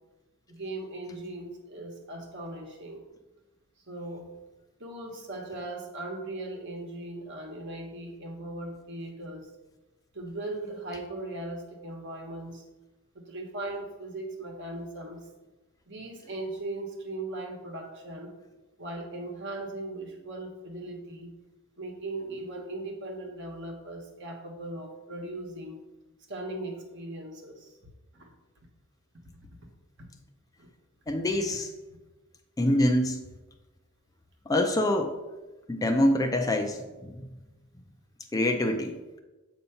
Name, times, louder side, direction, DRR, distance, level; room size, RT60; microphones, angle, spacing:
voice 1, 0.5-3.0 3.9-4.3 4.8-9.5 10.1-12.6 13.1-15.2 15.9-18.3 18.8-21.3 21.8-25.8 26.3-27.7 28.1-28.3 30.0-30.1 30.6-30.7, right 2 dB, 55° right, 1 dB, 1.1 m, -38 dB
voice 2, 31.1-31.7 32.6-33.2 34.5-35.1 35.7-37.3 38.3-39.0, left 1 dB, 15° left, 4 dB, 0.4 m, -25 dB
7.5 x 2.8 x 5.6 m, 1.1 s
head